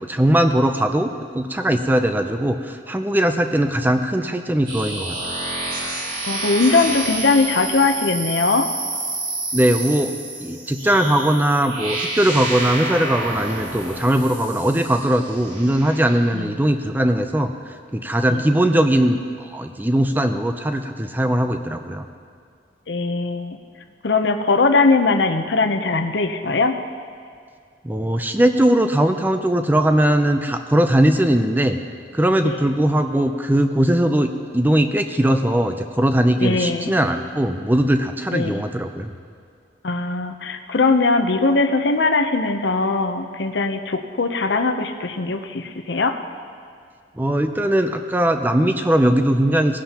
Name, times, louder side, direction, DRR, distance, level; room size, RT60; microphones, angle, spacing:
voice 1, 0.0-5.2 9.5-22.0 27.8-31.8 32.1-39.1 47.2-49.8, right 1 dB, 10° right, 7 dB, 0.5 m, -20 dB
sound 1, 4.7-16.3, right 2 dB, 50° right, 2.5 m, -29 dB
voice 2, 6.2-8.7 16.3-16.6 18.3-18.4 22.9-23.6 24.0-26.7 32.4-32.6 36.4-37.0 38.3-38.6 39.8-46.1, left 3 dB, 75° left, 7 dB, 0.7 m, -20 dB
19.0 x 11.0 x 2.9 m, 2.2 s
head